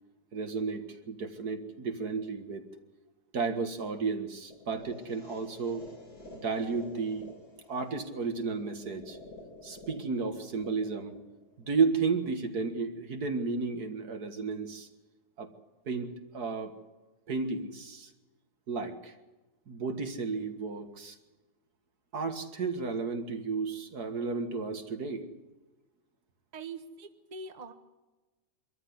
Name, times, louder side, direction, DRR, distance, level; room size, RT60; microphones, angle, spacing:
voice 1, 0.3-2.7 3.3-5.9 6.4-7.3 7.7-9.2 9.6-11.2 11.7-14.9 15.4-15.5 15.9-16.7 17.3-18.1 18.7-19.1 19.7-21.2 22.1-25.3, right 4 dB, 65° right, 7 dB, 2.3 m, -33 dB
sound 1, 4.5-12.5, left 2 dB, 65° left, 4.8 m, -51 dB
voice 2, 26.5-27.7, right 4 dB, 25° right, 7 dB, 1.4 m, -43 dB
24.5 x 13.5 x 9.8 m, 1.2 s
omnidirectional pair, 1.8 m